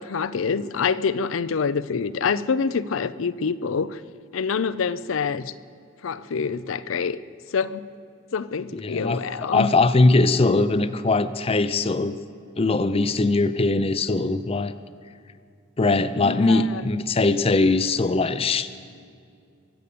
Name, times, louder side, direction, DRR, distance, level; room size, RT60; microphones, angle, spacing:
voice 1, 0.0-4.0 4.3-5.5 6.0-7.2 7.5-7.8 8.3-9.7 16.2-16.9, left 5 dB, 80° left, 16 dB, 0.5 m, -26 dB
voice 2, 8.7-12.2 12.6-14.7 15.8-18.7, left 3 dB, 30° left, 13 dB, 0.5 m, -21 dB
23.0 x 8.1 x 6.9 m, 2.4 s
head